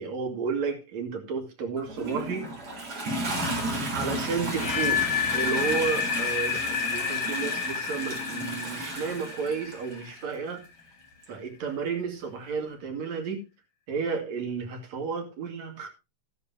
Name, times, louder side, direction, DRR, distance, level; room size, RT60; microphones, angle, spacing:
voice 1, 0.0-2.4 3.9-5.0 5.3-10.6 11.3-13.4 13.9-15.9, right 5 dB, 70° right, 3.7 m, -32 dB
Toilet flush, 1.8-10.2 11.2-11.3, right 1 dB, 50° right, 5.1 m, -33 dB
sound 1, 4.4-10.4, left 7 dB, 50° left, 1.5 m, -30 dB
13.5 x 11.5 x 2.8 m
omnidirectional pair, 3.3 m